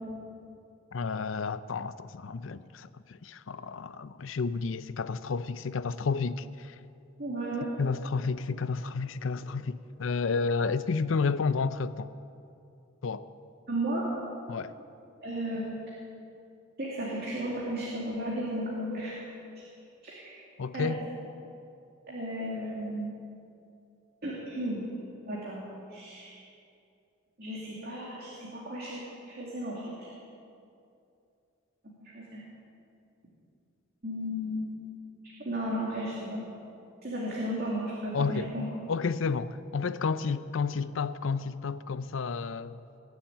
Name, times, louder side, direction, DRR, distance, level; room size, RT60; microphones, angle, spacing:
voice 1, 0.9-6.8 7.8-12.1 13.0-13.3 14.5-14.7 20.6-21.0 38.1-38.5 38.9-42.8, left 4 dB, 75° left, 0.5 m, -31 dB
voice 2, 7.2-7.7 13.7-14.1 15.2-15.6 16.8-19.2 20.0-20.4 20.7-20.9 22.1-23.3 24.2-24.9 25.3-26.4 27.4-30.1 32.0-32.4 34.0-34.8 35.4-36.4 37.0-38.6, right 1 dB, 50° right, 2.7 m, -34 dB
20.0 x 7.3 x 9.0 m
head